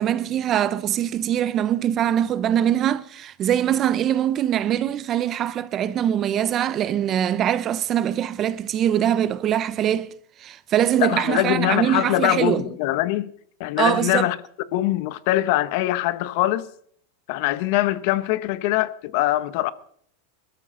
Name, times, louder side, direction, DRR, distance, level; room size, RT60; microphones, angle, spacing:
voice 1, 0.0-10.1 10.4-12.6 13.8-14.3, right 10 dB, 30° right, 0.6 m, -23 dB
voice 2, 11.0-13.3 13.6-14.4 14.7-16.7 17.3-19.7, left 15 dB, 55° left, 0.9 m, -23 dB
22.5 x 13.5 x 3.8 m
supercardioid pair, 145°, 0 cm